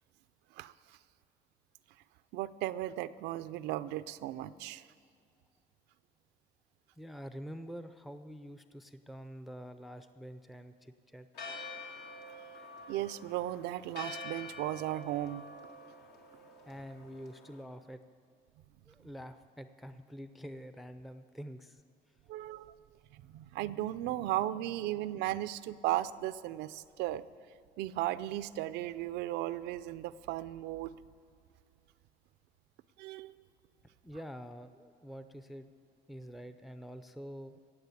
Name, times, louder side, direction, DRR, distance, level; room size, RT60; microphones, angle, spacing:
voice 1, 2.3-4.8 12.9-15.4 22.3-22.8 23.1-27.2 27.8-31.0 33.0-33.4, right 14 dB, 85° right, 14 dB, 0.5 m, -36 dB
voice 2, 7.0-11.3 16.7-18.0 18.9-21.8 34.0-35.7 36.1-37.5, equal, ahead, 10 dB, 0.5 m, -46 dB
Church bell, 11.3-17.6, left 2 dB, 75° left, 2.0 m, -47 dB
17.5 x 7.3 x 8.3 m, 2.3 s
cardioid pair, 110°, 17 cm